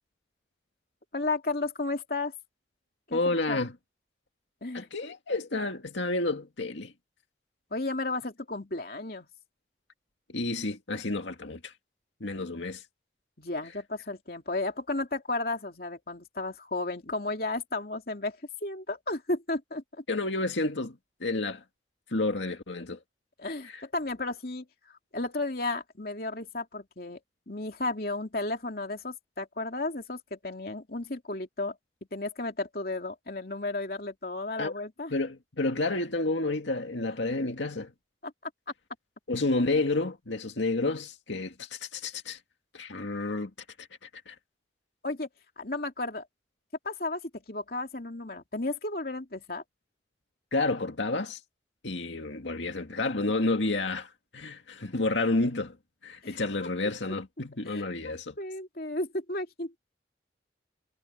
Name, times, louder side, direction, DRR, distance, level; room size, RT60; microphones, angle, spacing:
voice 1, 1.1-2.3 3.1-3.6 4.6-4.9 7.7-9.3 13.4-20.0 23.4-27.2 27.5-31.8 32.1-35.1 38.2-38.3 45.0-45.3 45.6-46.3 46.8-49.6 56.2-56.4 57.6-59.8, left 2 dB, 55° left, 2.9 m, -33 dB
voice 2, 3.1-3.7 4.7-6.9 10.3-11.7 12.2-12.8 20.1-21.6 22.1-23.0 23.6-23.8 34.6-34.7 35.1-37.9 39.3-42.4 42.7-43.5 43.8-44.4 50.5-51.4 51.8-55.8 56.0-58.3, left 2 dB, 90° left, 2.1 m, -30 dB
head